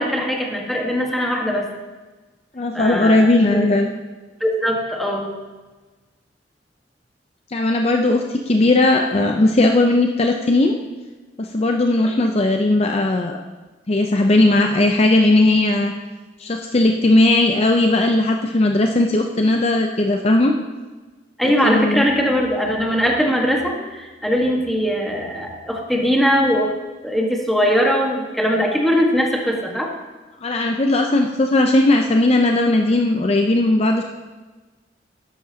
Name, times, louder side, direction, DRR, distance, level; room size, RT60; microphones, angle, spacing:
voice 1, 0.0-1.7 2.7-3.7 4.4-5.3 21.4-26.7 27.0-29.9, equal, ahead, 0 dB, 1.4 m, -20 dB
voice 2, 2.5-3.9 7.5-10.8 11.4-13.4 13.9-15.9 16.4-20.5 21.4-22.1 30.4-34.0, left 2 dB, 35° left, 3 dB, 0.6 m, -17 dB
13.0 x 11.0 x 2.8 m, 1.2 s
head